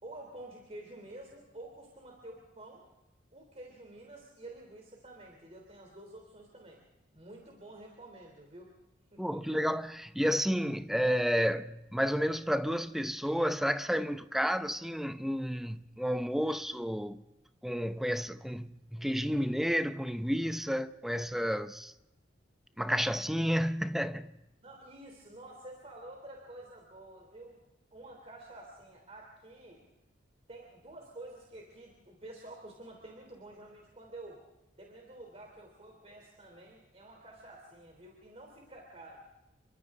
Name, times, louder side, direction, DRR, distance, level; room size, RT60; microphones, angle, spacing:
voice 1, 0.0-2.8 3.3-6.8 7.1-8.7 9.1-9.4 22.7-22.8 24.6-27.6 27.9-29.8 30.5-34.4 34.8-39.2, right 1 dB, 35° right, 3.3 m, -49 dB
voice 2, 9.2-17.2 17.6-21.9 22.8-24.3, equal, ahead, 0.7 m, -31 dB
29.0 x 24.5 x 3.7 m
head